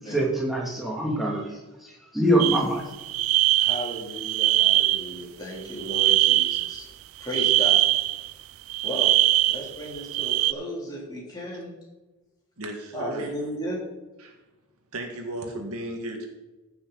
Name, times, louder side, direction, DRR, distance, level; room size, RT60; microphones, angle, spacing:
voice 1, 0.0-1.5 1.8-2.8, right 1 dB, ahead, -5 dB, 2.5 m, -24 dB
sound 1, 2.4-2.6 2.9-5.2 5.7-6.8 7.2-8.3 8.7-10.5, right 16 dB, 70° right, 0.4 m, -22 dB
voice 2, 3.5-6.8 7.2-7.8 8.8-9.1 9.5-11.7 12.9-13.8, right 1 dB, 20° left, -4 dB, 3.3 m, -34 dB
voice 3, 12.6-13.3 14.2-14.3 14.9-16.3, right 1 dB, 85° right, 3 dB, 1.9 m, -35 dB
15.0 x 6.8 x 4.0 m, 1.1 s
head